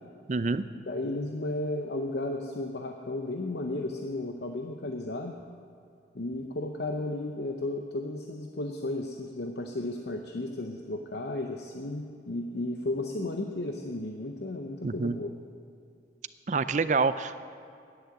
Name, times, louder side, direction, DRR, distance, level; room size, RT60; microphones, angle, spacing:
voice 1, 0.3-0.6 14.8-15.2 16.5-17.4, right 4 dB, 40° right, 13 dB, 0.4 m, -27 dB
voice 2, 0.9-5.3 6.1-15.3, left 2 dB, 70° left, 3 dB, 0.8 m, -34 dB
10.5 x 10.5 x 8.3 m, 2.4 s
head